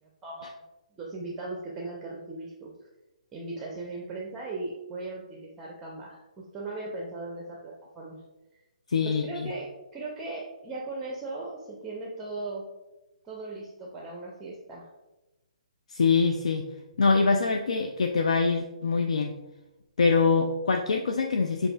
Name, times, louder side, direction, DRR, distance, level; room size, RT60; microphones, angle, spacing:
voice 1, 0.0-0.5 1.0-2.7 3.3-6.2 6.5-8.2 9.0-12.6 13.2-14.9, right 2 dB, 15° right, -2 dB, 0.6 m, -38 dB
voice 2, 8.9-9.5 15.9-16.7 17.0-19.4 20.0-21.7, left 4 dB, 65° left, 4 dB, 0.3 m, -24 dB
7.5 x 2.5 x 2.3 m, 1.0 s
figure-of-eight pair, 130°, 4 cm